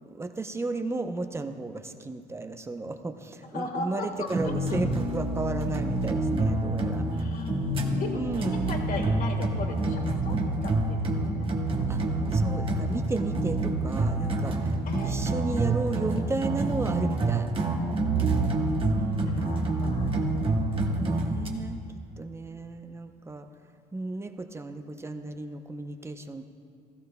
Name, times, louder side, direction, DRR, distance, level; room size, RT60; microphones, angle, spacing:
voice 1, 0.0-7.1 8.1-8.7 11.9-12.0 12.3-14.8 15.0-17.5 18.9-19.6 20.9-21.8 22.2-23.5 23.9-26.5, right 3 dB, 15° right, 8 dB, 0.6 m, -34 dB
voice 2, 3.5-4.1 7.1-7.7 8.0-11.5 14.9-15.2 19.3-20.2, left 3 dB, 55° left, 3 dB, 1.5 m, -37 dB
sound 1, 4.3-21.5, right 2 dB, 30° right, 1.2 m, -27 dB
16.5 x 14.5 x 2.2 m, 2.4 s
cardioid pair, 110°, 17 cm